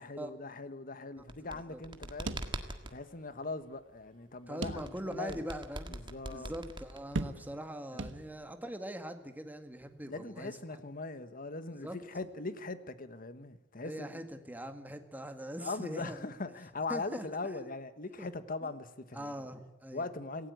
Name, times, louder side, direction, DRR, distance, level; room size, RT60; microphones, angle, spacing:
voice 1, 0.0-2.4 2.9-5.4 5.9-6.5 7.9-8.0 10.0-14.2 15.6-19.3 19.9-20.5, left 3 dB, 50° left, 1.4 m, -40 dB
sound 1, 1.2-3.0 4.8-7.3, right 2 dB, 25° right, 1.7 m, -42 dB
sound 2, 2.3-3.1 3.4-3.5 4.6-5.3 5.8-5.9 7.1-7.7 8.0-8.6, right 2 dB, 80° right, 1.3 m, -39 dB
voice 2, 4.5-5.9 6.3-10.8 11.8-12.0 13.8-16.3 16.9-17.7 18.2-18.7 19.1-20.1, equal, 10° right, 1.9 m, -42 dB
18.5 x 17.0 x 9.4 m
head